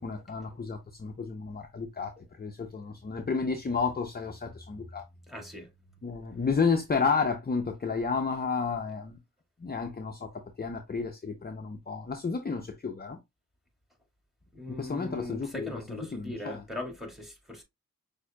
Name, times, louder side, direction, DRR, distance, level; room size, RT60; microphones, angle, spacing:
voice 1, 0.0-2.1 2.4-5.0 6.0-9.2 9.6-13.2 14.7-16.6, left 5 dB, 30° left, 0.7 m, -31 dB
voice 2, 5.3-5.7 14.5-17.6, left 1 dB, ahead, 2.1 m, -39 dB
6.1 x 2.7 x 2.3 m
cardioid pair, 60°, 34 cm